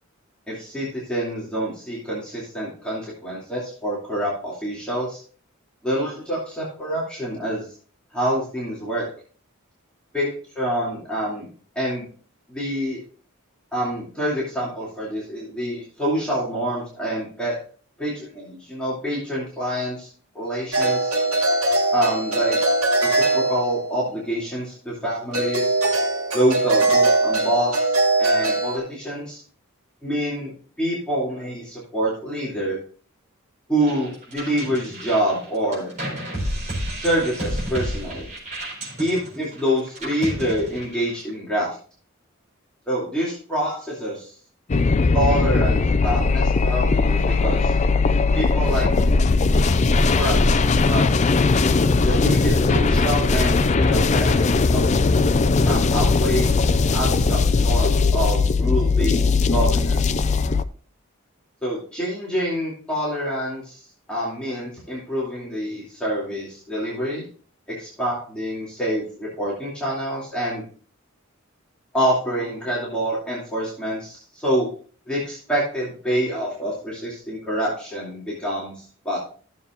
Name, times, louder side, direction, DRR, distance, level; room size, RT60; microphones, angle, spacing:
voice 1, 0.5-5.2 5.8-7.7 8.1-9.1 10.1-11.5 11.7-12.1 12.5-13.0 13.7-17.6 18.0-20.1 20.3-21.1 21.9-22.6 23.0-25.8 26.3-29.4 30.0-30.5 30.8-32.8 33.7-35.9 37.0-38.3 39.0-41.8 42.9-44.3 45.1-47.7 48.3-48.9 50.2-51.0 51.6-54.4 54.7-54.8 55.6-60.0 61.6-63.8 64.1-67.2 67.7-70.6 71.9-74.7 75.1-79.2, equal, 5° left, -7 dB, 2.6 m, -26 dB
sound 1, 20.7-24.1 25.3-28.8, right 2 dB, 85° right, 2.4 m, -21 dB
sound 2, 33.8-41.3, right 1 dB, 35° right, 4.3 m, -31 dB
sound 3, 44.7-60.6, left 3 dB, 35° left, 0.4 m, -19 dB
15.0 x 7.1 x 2.5 m, 0.43 s
head